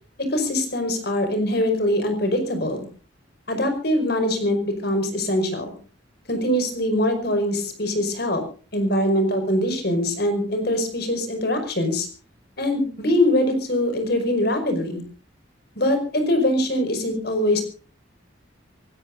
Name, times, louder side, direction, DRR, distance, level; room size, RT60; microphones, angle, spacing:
voice 1, 0.2-2.9 3.5-5.7 6.3-8.4 8.7-12.1 12.6-15.0 15.8-17.6, left 1 dB, 55° left, 7 dB, 5.5 m, -23 dB
24.5 x 19.0 x 2.6 m, 0.38 s
head